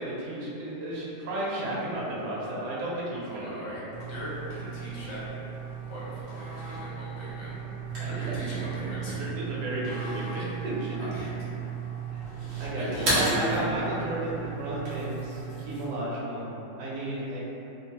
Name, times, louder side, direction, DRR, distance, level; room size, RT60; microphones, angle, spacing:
voice 1, 0.0-3.8 8.0-8.3 9.2-11.1 12.1-12.2 12.6-17.4, right 1 dB, 70° right, -6 dB, 1.2 m, -33 dB
voice 2, 3.3-5.3 5.8-7.6 8.0-9.3 11.0-11.6 12.8-13.6, right 1 dB, 75° left, -8 dB, 1.4 m, -37 dB
sound 1, 3.9-15.9, right 4 dB, 55° right, 0.7 m, -34 dB
3.1 x 2.1 x 2.8 m, 3.0 s
omnidirectional pair, 2.0 m